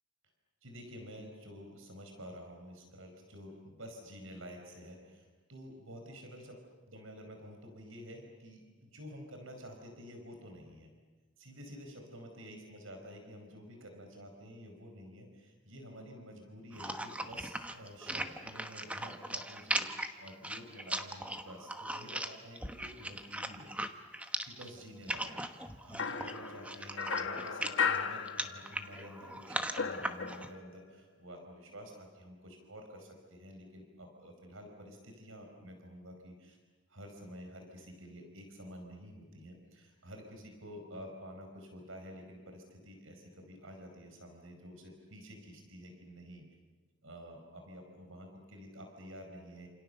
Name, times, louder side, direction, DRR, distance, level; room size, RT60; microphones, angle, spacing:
voice 1, 0.6-6.6 6.9-10.9 11.4-23.7 24.4-36.6 36.9-46.4 47.0-49.7, equal, 80° right, 4 dB, 5.1 m, -50 dB
sound 1, 16.7-30.5, right 1 dB, 5° right, 1.1 m, -39 dB
sound 2, 26.0-29.0 29.3-30.8, left 6 dB, 65° left, 1.5 m, -36 dB
29.5 x 28.0 x 6.8 m, 1.3 s
head